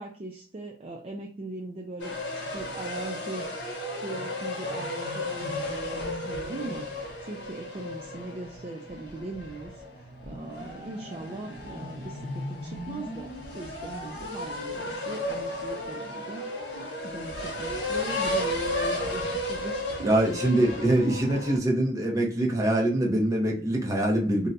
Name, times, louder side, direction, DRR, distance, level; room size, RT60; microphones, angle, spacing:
voice 1, 0.0-3.5 4.0-16.5 17.0-20.3 21.8-21.9, right 2 dB, 35° right, 1 dB, 0.4 m, -40 dB
sound 1, 2.0-21.6, left 1 dB, 75° left, 0.9 m, -34 dB
voice 2, 20.0-24.5, right 1 dB, 20° right, -2 dB, 0.8 m, -24 dB
2.6 x 2.2 x 3.9 m, 0.40 s
head